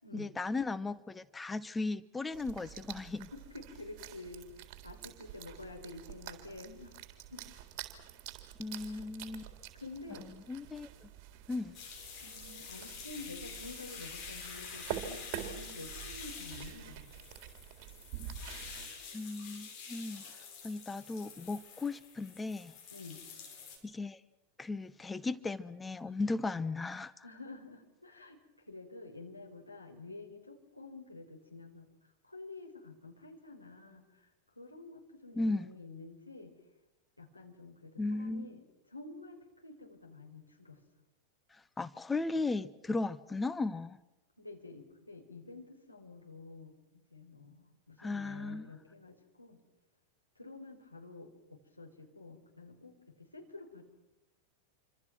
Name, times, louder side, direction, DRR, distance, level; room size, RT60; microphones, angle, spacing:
voice 1, 0.1-3.3 8.6-9.5 10.5-11.1 11.5-11.8 19.1-20.2 20.6-22.7 23.8-24.2 24.6-27.2 35.3-35.7 38.0-38.5 41.5-44.0 48.0-48.7, left 3 dB, 10° left, 15 dB, 0.9 m, -36 dB
sound 1, 2.3-18.9, right 10 dB, 40° right, 3.9 m, -47 dB
voice 2, 3.3-7.0 7.3-7.4 8.8-9.4 9.7-10.3 12.2-17.1 22.9-23.2 27.2-28.4 28.7-31.9 32.2-34.3 34.6-36.5 37.2-38.6 38.9-40.8 44.4-49.6 50.4-53.8, left 3 dB, 90° left, 2 dB, 4.4 m, -49 dB
sound 2, 11.7-23.8, left 6 dB, 40° left, 7.4 m, -48 dB
27.5 x 25.5 x 6.1 m, 1.0 s
figure-of-eight pair, 90°, 0 cm